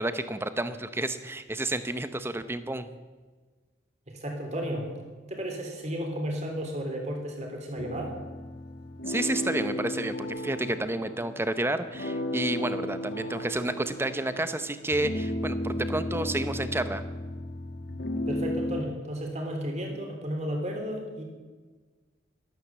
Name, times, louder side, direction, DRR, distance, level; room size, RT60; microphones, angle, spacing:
voice 1, 0.0-2.9 9.1-17.0, right 1 dB, 10° right, 11 dB, 0.8 m, -30 dB
voice 2, 4.1-4.9 5.2-8.1 18.3-21.2, equal, 35° right, 2 dB, 3.4 m, -33 dB
sound 1, 7.8-18.8, left 1 dB, 55° left, 1.7 m, -34 dB
13.0 x 13.0 x 7.5 m, 1.4 s
head